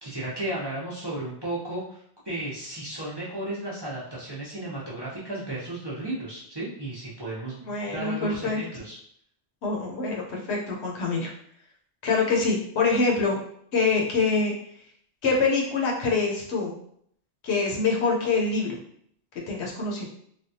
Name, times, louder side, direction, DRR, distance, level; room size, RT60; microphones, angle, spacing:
voice 1, 0.0-7.6 7.9-9.0, right 1 dB, 25° right, -7 dB, 0.6 m, -34 dB
voice 2, 7.6-8.6 9.6-11.3 12.0-13.4 13.7-14.5 15.2-16.7 17.4-18.8 19.5-20.1, left 4 dB, 75° left, -1 dB, 1.0 m, -25 dB
3.4 x 2.2 x 2.7 m, 0.66 s
omnidirectional pair, 1.1 m